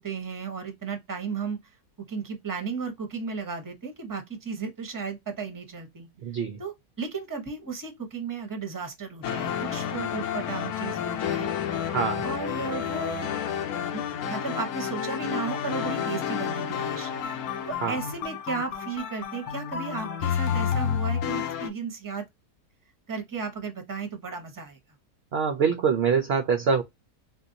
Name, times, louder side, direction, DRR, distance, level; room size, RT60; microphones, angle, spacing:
voice 1, 0.0-1.6 2.1-6.1 6.6-11.5 12.2-13.3 13.9-14.0 14.3-17.1 17.6-22.3 23.1-24.8, right 5 dB, 15° right, 0.8 m, -34 dB
voice 2, 6.2-6.6 11.9-12.2 17.8-18.0 25.3-26.8, right 6 dB, 65° right, 0.6 m, -24 dB
sound 1, 9.2-21.7, left 8 dB, 70° left, 1.1 m, -30 dB
3.7 x 2.6 x 2.6 m
omnidirectional pair, 1.7 m